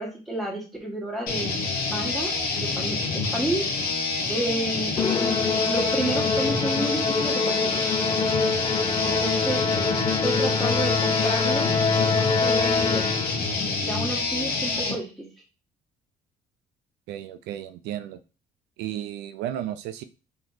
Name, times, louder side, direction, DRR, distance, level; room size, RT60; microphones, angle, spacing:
voice 1, 0.0-1.5 1.9-2.3 2.6-3.6 4.3-7.9 9.1-11.8 12.2-13.1 13.8-15.3, right 1 dB, ahead, -2 dB, 1.4 m, -31 dB
sound 1, 1.3-15.0, left 3 dB, 65° left, 1.0 m, -27 dB
Musical instrument, 5.0-13.5, left 4 dB, 25° left, 0.4 m, -25 dB
voice 2, 17.1-18.2 18.8-20.0, right 11 dB, 85° right, 11 dB, 0.4 m, -33 dB
3.2 x 3.0 x 3.9 m, 0.33 s
cardioid pair, 110°, 17 cm